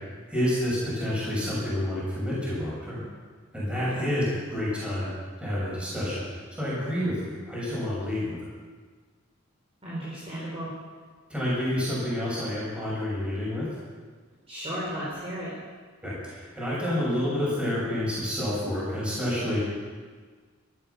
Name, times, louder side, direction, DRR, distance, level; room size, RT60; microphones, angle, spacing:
voice 1, 0.3-3.0 3.5-5.1 5.4-8.5 11.3-13.7 16.0-19.7, left 1 dB, 5° right, -8 dB, 6.8 m, -29 dB
voice 2, 9.8-10.7 14.5-15.5, equal, 30° right, -8 dB, 4.4 m, -34 dB
14.5 x 14.0 x 6.9 m, 1.5 s
head